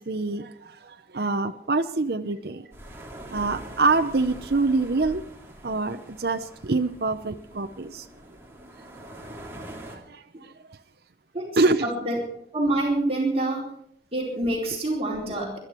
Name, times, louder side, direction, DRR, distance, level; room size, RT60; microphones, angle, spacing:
voice 1, 0.0-2.7 3.3-5.2 5.6-8.1 9.9-10.5 11.6-11.8, right 3 dB, 60° right, 0.7 m, -25 dB
sound 1, 2.7-10.0, right 1 dB, 15° right, 2.7 m, -43 dB
voice 2, 11.8-12.2 12.5-13.6 14.1-15.6, right 1 dB, 35° right, 4.3 m, -26 dB
21.5 x 12.5 x 4.5 m
head